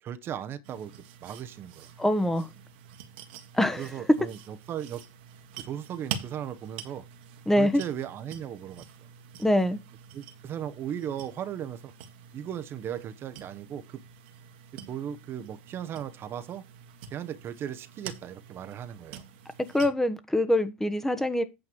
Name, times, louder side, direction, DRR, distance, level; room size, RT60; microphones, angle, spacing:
voice 1, 0.0-0.9 1.2-1.9 3.8-5.0 5.6-7.0 7.6-8.8 10.1-11.9 12.3-14.0 14.9-16.6 17.1-19.2, right 9 dB, 40° right, 1.0 m, -37 dB
sound 1, 0.6-19.9, right 8 dB, 70° right, 1.6 m, -46 dB
voice 2, 2.0-2.5 3.5-4.0 7.5-7.8 9.4-9.8 19.7-21.4, left 1 dB, 5° left, 1.1 m, -24 dB
8.8 x 6.4 x 4.6 m
hypercardioid pair, 80°, 6 cm